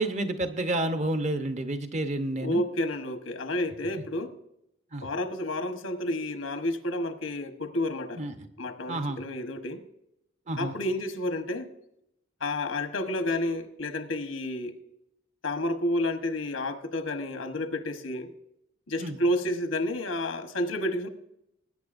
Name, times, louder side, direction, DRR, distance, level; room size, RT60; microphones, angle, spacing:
voice 1, 0.0-2.6 4.9-5.1 8.2-8.3 8.9-9.2 10.5-10.7 19.0-19.2, right 1 dB, 35° right, 8 dB, 0.9 m, -29 dB
voice 2, 2.4-4.3 5.0-8.2 8.6-9.8 10.6-11.7 12.4-14.7 15.4-18.3 18.9-21.1, left 1 dB, 90° left, 7 dB, 1.2 m, -30 dB
20.0 x 9.4 x 2.6 m, 0.79 s
head